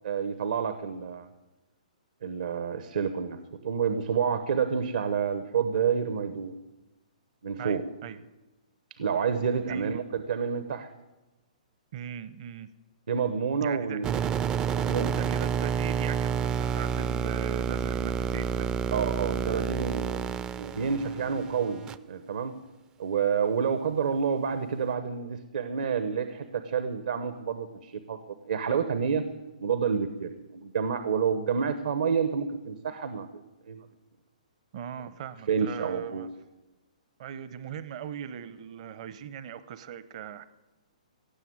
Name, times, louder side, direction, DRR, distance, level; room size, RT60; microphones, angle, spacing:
voice 1, 0.0-1.3 2.2-6.5 7.4-7.8 8.9-10.9 13.1-14.1 14.7-15.1 18.9-20.2 20.5-22.5 23.0-29.3 29.6-33.9 35.5-36.3, right 6 dB, 70° right, 11 dB, 1.0 m, -29 dB
voice 2, 7.6-8.2 9.7-10.0 11.9-12.7 13.6-14.0 15.1-18.8 34.7-36.3 37.2-40.4, right 8 dB, 50° right, 15 dB, 0.8 m, -39 dB
sound 1, 14.0-22.0, right 7 dB, 20° right, 0.4 m, -29 dB
16.5 x 7.2 x 9.5 m, 1.1 s
hypercardioid pair, 140°, 4 cm